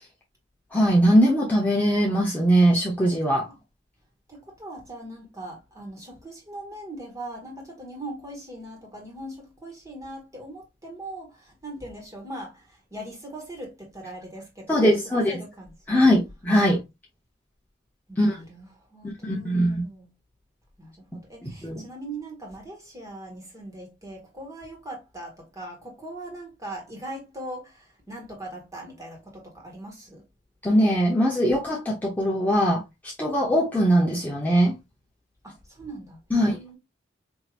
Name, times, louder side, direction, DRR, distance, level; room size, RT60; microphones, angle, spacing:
voice 1, 0.7-3.5 14.7-15.3 15.9-16.8 18.2-18.4 19.2-19.8 21.4-21.8 30.6-34.7 36.3-36.5, equal, 10° left, 0.9 m, -21 dB
voice 2, 4.3-16.0 18.1-20.1 20.8-30.3 35.4-36.8, right 1 dB, 20° right, 1.7 m, -40 dB
4.7 x 2.9 x 2.5 m
head